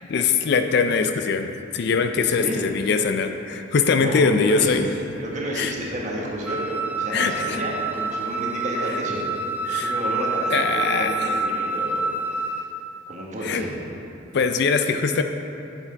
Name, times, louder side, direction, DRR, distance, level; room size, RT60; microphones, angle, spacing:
voice 1, 0.1-4.9 5.5-5.7 7.1-7.6 9.7-9.9 10.5-11.3 13.4-13.6 14.3-15.2, left 5 dB, 55° left, 7 dB, 0.4 m, -22 dB
voice 2, 1.9-2.6 3.9-4.8 5.2-9.3 9.7-12.6 13.1-13.7, equal, 40° right, -3 dB, 1.3 m, -31 dB
Wind instrument woodwind instrument, 6.4-12.7, right 3 dB, 10° right, 0.4 m, -27 dB
9.0 x 7.2 x 3.3 m, 2.7 s
head